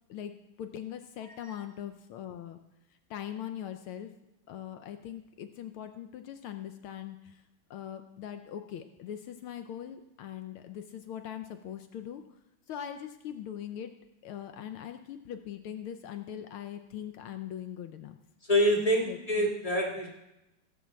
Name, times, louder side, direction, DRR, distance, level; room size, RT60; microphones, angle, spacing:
voice 1, 0.1-2.6 3.1-4.1 4.5-7.4 7.7-12.2 12.7-13.9 14.2-18.2 19.0-19.5, left 10 dB, 80° left, 7 dB, 1.6 m, -41 dB
voice 2, 18.4-20.1, equal, 15° left, -1 dB, 2.4 m, -26 dB
16.5 x 5.9 x 7.6 m, 0.91 s
omnidirectional pair, 2.4 m